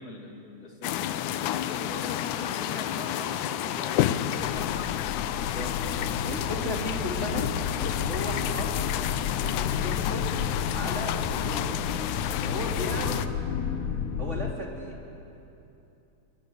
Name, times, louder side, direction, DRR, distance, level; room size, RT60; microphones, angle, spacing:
voice 1, 0.0-5.4 12.9-13.1, left 3 dB, 30° left, 1 dB, 1.9 m, -41 dB
sound 1, 0.8-13.3, left 12 dB, 85° left, 1.7 m, -30 dB
sound 2, 4.4-14.5, left 7 dB, 65° left, 2.2 m, -32 dB
voice 2, 5.3-7.5 7.8-8.8 9.4-10.3 10.7-11.8 12.4-13.2 14.2-15.0, equal, 20° right, -1 dB, 2.4 m, -36 dB
Drum kit, 13.6-14.0, left 2 dB, 50° left, 4.0 m, -43 dB
27.0 x 22.5 x 6.8 m, 2.9 s
omnidirectional pair, 4.4 m